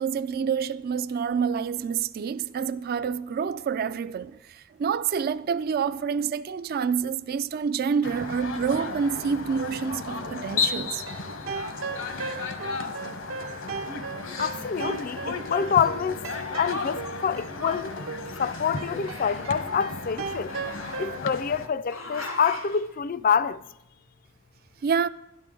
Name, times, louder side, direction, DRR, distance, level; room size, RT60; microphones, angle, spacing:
voice 1, 0.0-11.0 24.8-25.1, right 6 dB, 50° right, 0.3 m, -27 dB
sound 1, 8.0-21.7, left 4 dB, 65° left, 1.1 m, -34 dB
sound 2, 11.0-21.2, right 4 dB, 85° right, 1.0 m, -38 dB
voice 2, 14.4-16.2 16.6-18.0 18.4-20.5 21.0-23.6, left 7 dB, 45° left, 0.4 m, -26 dB
Growling, 17.1-17.9 18.2-19.6 20.5-21.5 21.9-22.8, left 2 dB, 85° left, 3.1 m, -41 dB
12.5 x 11.0 x 3.8 m
head